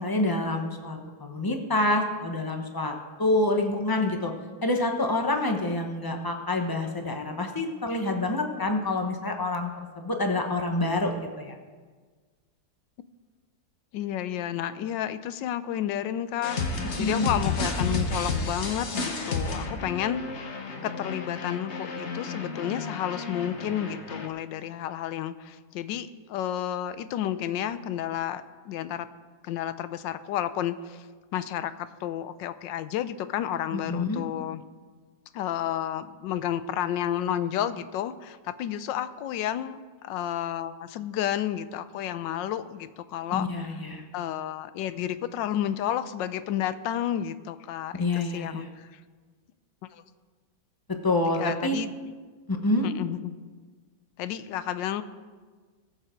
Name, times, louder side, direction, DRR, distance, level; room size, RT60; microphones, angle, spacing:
voice 1, 0.0-4.3 4.6-11.5 17.0-17.3 33.9-34.2 43.3-44.0 48.0-48.7 51.0-51.8 52.5-52.9, left 2 dB, 20° left, 4 dB, 0.7 m, -27 dB
voice 2, 13.9-29.1 29.4-31.1 31.3-34.6 35.3-43.8 44.1-49.0 49.9-50.0 51.3-51.9 52.8-53.3 54.2-55.0, left 11 dB, 80° left, 13 dB, 1.3 m, -31 dB
sound 1, 16.4-24.3, left 3 dB, 40° left, 1.2 m, -32 dB
19.0 x 7.6 x 4.5 m, 1.5 s
omnidirectional pair, 2.1 m